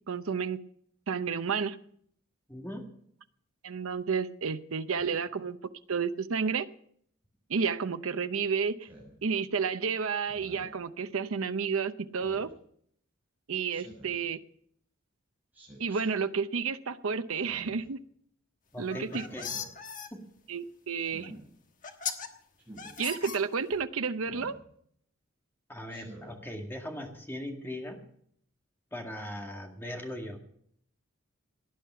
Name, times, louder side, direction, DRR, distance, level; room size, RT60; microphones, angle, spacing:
voice 1, 0.1-0.6 1.1-1.8 3.6-5.6 5.9-6.7 7.5-8.9 9.2-12.5 13.5-14.4 15.8-18.0 18.8-19.2 20.5-21.3 23.0-24.6, right 5 dB, 85° right, 10 dB, 0.7 m, -31 dB
voice 2, 2.5-2.9 18.7-19.5 20.1-20.2 25.7-28.0 28.9-30.4, left 1 dB, 10° left, 2 dB, 1.9 m, -39 dB
Speech synthesizer, 8.8-9.1 10.3-10.8 12.2-12.5 13.7-14.2 15.5-16.0 17.3-17.9 19.2-19.7 21.0-21.4 22.6-22.9 24.2-24.6 25.9-26.4, right 1 dB, 10° right, 6.4 m, -49 dB
sound 1, 18.8-20.1 21.2-21.3 21.8-22.3 22.8-23.8, left 7 dB, 40° left, 1.3 m, -37 dB
18.0 x 10.0 x 5.6 m, 0.66 s
head